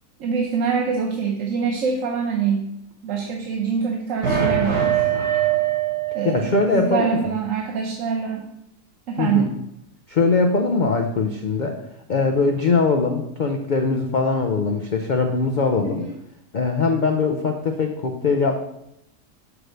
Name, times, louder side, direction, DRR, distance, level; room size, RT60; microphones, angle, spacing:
voice 1, 0.2-2.7 3.0-5.1 6.1-8.4 9.1-9.5 15.8-16.1, right 6 dB, 60° right, 1 dB, 1.1 m, -24 dB
sound 1, 4.2-6.9, right 9 dB, 85° right, 2.3 m, -22 dB
voice 2, 6.2-7.2 9.2-9.5 10.1-11.8 12.1-16.0 16.5-18.6, left 4 dB, 75° left, 4 dB, 0.4 m, -21 dB
6.1 x 4.8 x 6.4 m, 0.82 s
omnidirectional pair, 1.7 m